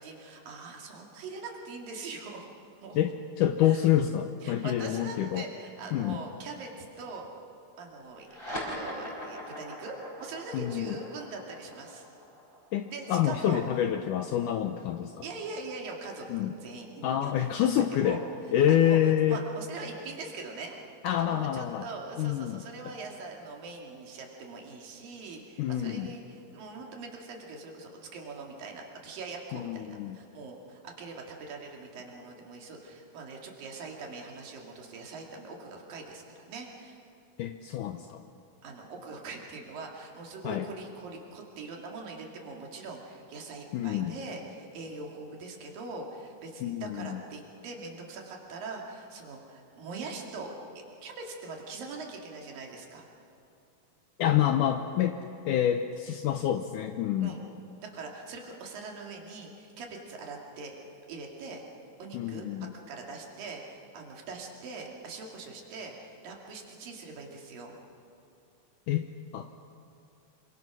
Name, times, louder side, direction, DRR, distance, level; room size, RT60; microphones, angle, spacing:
voice 1, 0.0-2.5 2.8-3.0 3.6-3.9 4.4-7.3 7.8-12.0 12.9-13.6 15.2-17.5 18.0-18.2 18.9-19.0 19.3-20.8 21.2-37.0 38.6-50.5 51.0-53.1 57.2-57.4 57.9-60.8 61.1-61.6 62.0-62.4 62.9-67.8, right 3 dB, 70° right, 0 dB, 4.2 m, -42 dB
voice 2, 3.0-5.5 5.9-6.2 10.5-11.0 12.7-15.2 16.3-16.5 17.0-18.2 18.5-19.4 21.0-21.9 22.2-22.6 25.6-26.1 29.5-30.2 37.4-38.2 40.4-40.7 43.7-44.2 46.6-47.2 54.2-55.2 55.5-57.4 62.1-62.7 68.9-69.1 69.3-69.5, left 11 dB, 75° left, 7 dB, 2.0 m, -27 dB
sound 1, 8.2-15.1, equal, 15° left, 5.0 m, -42 dB
26.5 x 24.0 x 6.1 m, 2.8 s
omnidirectional pair, 4.2 m